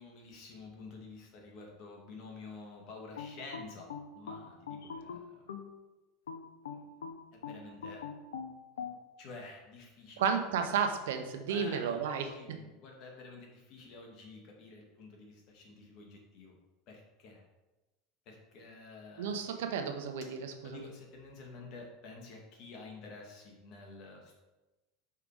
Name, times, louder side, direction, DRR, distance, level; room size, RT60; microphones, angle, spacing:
voice 1, 0.0-3.9 4.1-5.5 6.7-7.1 7.3-8.0 9.2-10.2 11.5-16.5 16.9-17.4 18.3-19.4 20.6-24.3, left 3 dB, 55° left, 0 dB, 2.1 m, -50 dB
sound 1, 3.2-5.7 6.3-9.0, left 6 dB, 85° left, 0.7 m, -42 dB
voice 2, 10.2-12.3 19.2-20.9, right 7 dB, 75° right, 5 dB, 0.9 m, -32 dB
5.8 x 5.2 x 4.8 m, 1.1 s
hypercardioid pair, 95°, 0 cm